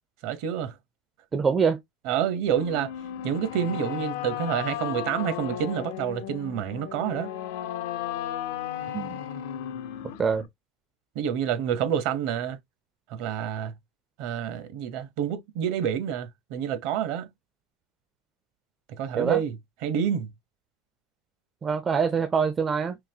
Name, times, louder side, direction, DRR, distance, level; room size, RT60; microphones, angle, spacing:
voice 1, 0.2-0.7 2.1-2.9 3.2-7.3 11.1-12.6 13.1-13.7 14.2-17.3 19.0-19.5 19.8-20.3, right 9 dB, 60° right, 0.8 m, -28 dB
voice 2, 1.3-1.8 8.9-9.2 10.2-10.5 19.2-19.4 21.6-23.0, right 6 dB, 20° right, 0.4 m, -24 dB
sound 1, 2.5-10.5, left 11 dB, 75° left, 0.6 m, -35 dB
3.8 x 2.7 x 2.7 m
supercardioid pair, 150°, 0 cm